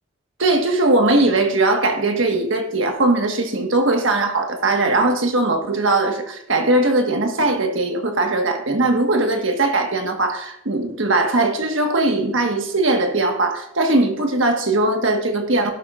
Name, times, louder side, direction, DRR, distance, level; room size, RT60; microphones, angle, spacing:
voice 1, 0.4-15.7, right 2 dB, 60° right, 4 dB, 1.5 m, -19 dB
11.5 x 11.0 x 2.5 m, 0.79 s
head